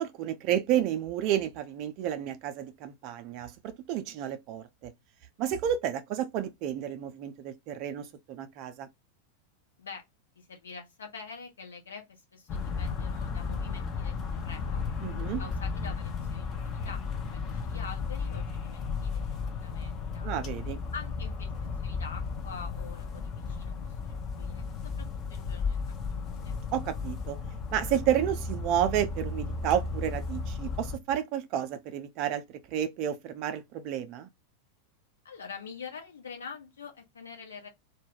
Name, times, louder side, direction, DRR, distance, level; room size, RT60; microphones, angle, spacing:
voice 1, 0.0-3.5 3.9-4.9 5.4-8.9 15.0-15.4 20.2-20.8 26.7-27.4 27.7-32.4 32.7-34.3, right 10 dB, 40° right, 0.4 m, -31 dB
voice 2, 10.4-14.9 15.4-20.3 20.9-26.5 35.2-37.7, left 5 dB, 70° left, 0.8 m, -46 dB
sound 1, 12.5-31.0, left 4 dB, 30° left, 0.6 m, -34 dB
2.2 x 2.2 x 3.3 m
figure-of-eight pair, 90°, 0 cm